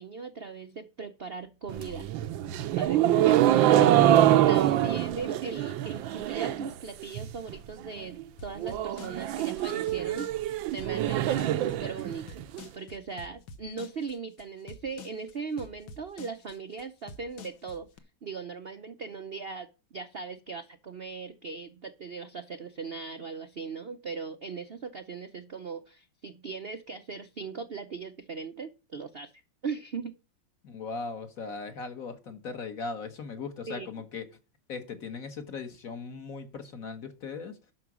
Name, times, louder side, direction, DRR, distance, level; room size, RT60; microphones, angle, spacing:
voice 1, 0.0-2.1 2.7-3.9 4.5-10.3 10.7-12.5 12.7-17.9 18.2-30.1 33.7-33.9, right 5 dB, 60° right, 0.6 m, -39 dB
sound 1, 1.7-6.7 7.0-7.5 7.8-7.9 8.2-8.3 8.6-12.6, right 12 dB, 80° right, 1.4 m, -25 dB
sound 2, 8.4-18.0, left 4 dB, 70° left, 1.7 m, -47 dB
voice 2, 30.6-34.3 34.7-37.6, left 4 dB, 50° left, 1.5 m, -38 dB
11.0 x 6.2 x 6.1 m
omnidirectional pair, 2.1 m